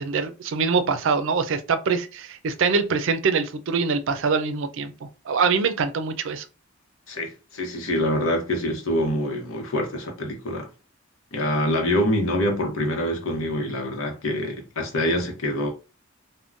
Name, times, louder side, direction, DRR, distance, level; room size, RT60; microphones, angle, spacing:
voice 1, 0.0-6.5, right 5 dB, 65° right, 0.4 m, -24 dB
voice 2, 7.1-10.7 11.3-15.7, left 1 dB, 80° left, 0.9 m, -25 dB
3.5 x 2.1 x 2.5 m
head